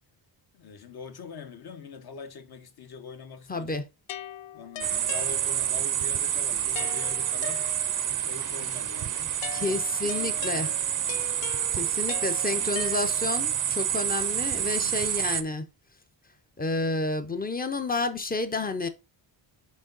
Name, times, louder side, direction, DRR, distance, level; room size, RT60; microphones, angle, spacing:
voice 1, 0.5-3.8 4.5-7.7 8.2-9.3 9.6-10.7 11.1-11.3 11.8-12.7 14.6-14.9, left 5 dB, 55° left, 1.1 m, -44 dB
voice 2, 3.5-3.9 9.5-10.7 11.7-15.7 16.6-18.9, left 3 dB, 20° left, 0.6 m, -30 dB
sound 1, 4.1-5.9 6.8-8.2 9.4-13.5, left 11 dB, 75° left, 0.6 m, -41 dB
sound 2, 4.8-15.4, right 10 dB, 45° right, 0.5 m, -28 dB
6.2 x 4.5 x 3.9 m
wide cardioid pair, 180°, 45 cm